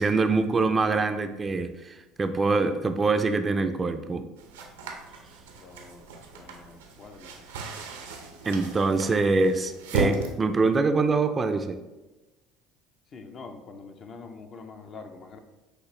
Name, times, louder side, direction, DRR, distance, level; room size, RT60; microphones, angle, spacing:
voice 1, 0.0-4.3 8.4-11.8, right 3 dB, 30° right, 8 dB, 0.4 m, -24 dB
sound 1, 4.4-10.3, right 3 dB, 90° right, 0.6 m, -35 dB
voice 2, 5.6-6.0 6.3-7.5 13.1-15.4, left 4 dB, 45° left, 6 dB, 0.5 m, -45 dB
6.1 x 2.5 x 3.2 m, 1.1 s
hypercardioid pair, 75°, 0 cm